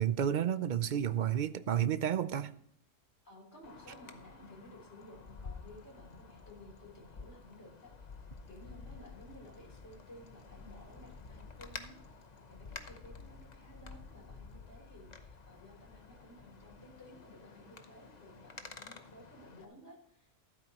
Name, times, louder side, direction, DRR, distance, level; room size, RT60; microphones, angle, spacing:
voice 1, 0.0-2.6, right 10 dB, 55° right, 0.5 m, -31 dB
voice 2, 3.2-7.9 8.5-20.3, left 1 dB, 60° left, 4.0 m, -55 dB
Wind, 3.6-19.6, left 4 dB, 35° left, 0.9 m, -51 dB
14.5 x 12.0 x 3.0 m
omnidirectional pair, 1.3 m